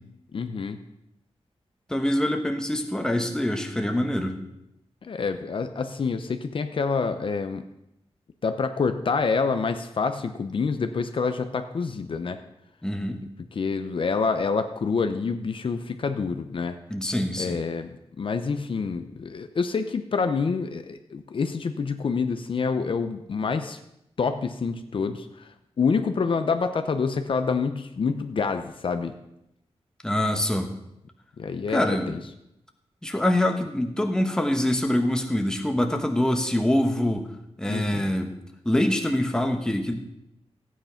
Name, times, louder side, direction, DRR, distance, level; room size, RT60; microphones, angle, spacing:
voice 1, 0.3-0.8 5.0-7.6 8.4-12.4 13.6-16.8 17.4-23.8 24.2-25.3 25.8-29.1 31.4-32.2 37.7-38.1, left 5 dB, 55° left, 8 dB, 0.8 m, -27 dB
voice 2, 1.9-4.4 12.8-13.2 16.9-17.6 30.0-30.7 31.7-32.1 33.0-37.3 37.6-38.4 38.6-40.0, left 1 dB, 5° left, 4 dB, 1.2 m, -25 dB
14.5 x 9.5 x 5.8 m, 0.83 s
wide cardioid pair, 170°, 11 cm